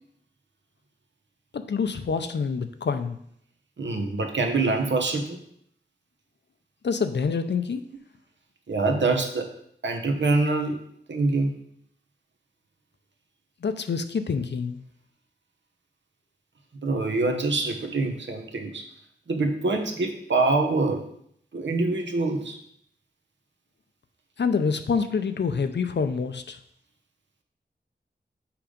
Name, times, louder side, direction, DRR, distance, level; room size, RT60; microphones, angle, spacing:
voice 1, 1.5-3.2 6.8-7.8 13.6-14.8 24.4-26.6, left 5 dB, 70° left, 9 dB, 0.6 m, -26 dB
voice 2, 3.8-5.4 8.7-9.5 9.8-10.8 11.1-11.6 16.8-18.8 19.3-21.0 21.5-22.6, right 3 dB, 80° right, 3 dB, 1.1 m, -25 dB
5.9 x 5.0 x 5.1 m, 0.68 s
wide cardioid pair, 70°, 19 cm